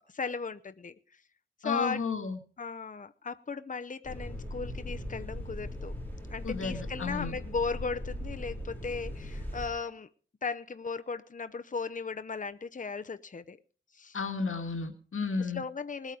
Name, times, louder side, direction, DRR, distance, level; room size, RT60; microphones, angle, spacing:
voice 1, 0.1-1.0 1.6-2.0 2.6-6.0 6.3-10.1 10.4-13.6 13.9-14.2 15.5-16.2, left 4 dB, 40° left, 0.7 m, -36 dB
voice 2, 1.6-2.4 6.4-7.4 14.1-15.6, left 4 dB, 85° left, 1.8 m, -32 dB
sound 1, 4.0-9.7, left 1 dB, 10° left, 5.4 m, -39 dB
20.0 x 9.0 x 5.1 m
wide cardioid pair, 85°, 21 cm